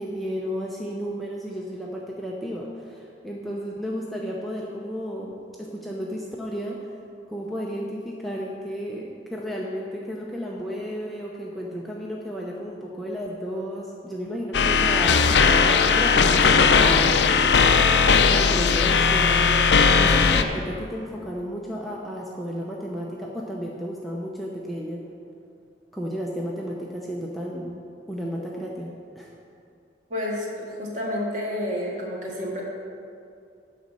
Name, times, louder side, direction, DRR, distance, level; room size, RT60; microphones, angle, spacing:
voice 1, 0.0-6.9 7.3-17.6 18.1-25.0 25.9-27.8 28.1-29.3, equal, ahead, -4 dB, 0.7 m, -33 dB
sound 1, 14.5-20.4, left 5 dB, 75° left, 0.5 m, -18 dB
voice 2, 30.1-32.6, left 1 dB, 45° right, -3 dB, 1.9 m, -30 dB
11.5 x 4.2 x 7.5 m, 2.5 s
head